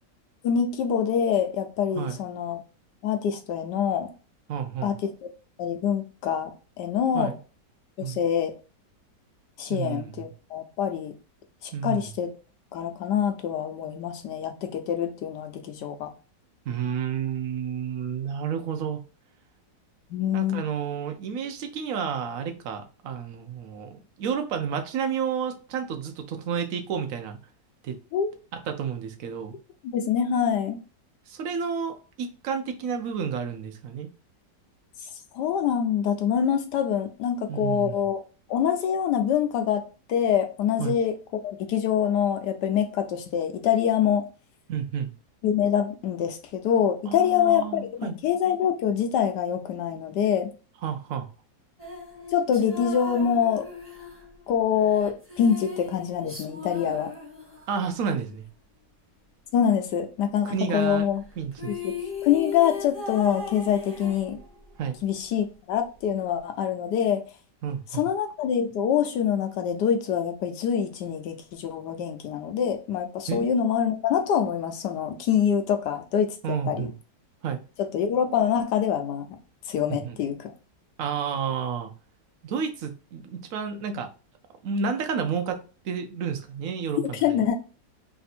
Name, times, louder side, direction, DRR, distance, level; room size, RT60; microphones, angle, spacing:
voice 1, 0.4-2.6 3.0-4.1 4.8-5.1 5.6-6.5 6.8-7.3 8.0-8.5 9.6-11.1 11.6-12.3 12.7-16.1 20.1-20.7 28.1-28.3 29.8-30.8 35.3-38.2 38.5-41.1 41.4-44.2 45.4-50.5 52.3-53.7 54.5-57.1 59.5-61.2 61.7-61.8 62.2-64.4 65.0-67.2 67.9-76.9 77.9-79.3 79.7-80.5 87.2-87.6, left 8 dB, 75° left, 1.1 m, -25 dB
voice 2, 4.5-5.0 7.1-7.4 8.0-8.2 9.7-10.3 11.7-12.1 16.7-19.0 20.3-27.4 27.8-28.0 28.5-29.5 31.3-34.1 37.5-38.0 40.8-41.0 44.7-45.1 47.1-48.2 50.8-51.3 57.7-58.4 60.4-61.1 61.4-61.7 64.8-65.0 67.6-68.1 73.3-73.5 76.4-76.9 77.4-77.6 79.9-80.2 81.0-81.9 82.4-84.1 84.6-85.6 85.8-87.4, right 7 dB, 60° right, 0.9 m, -31 dB
sound 1, 51.8-58.0 61.2-61.3 61.5-64.7, left 4 dB, 10° right, 1.1 m, -38 dB
3.4 x 2.6 x 4.1 m
omnidirectional pair, 1.9 m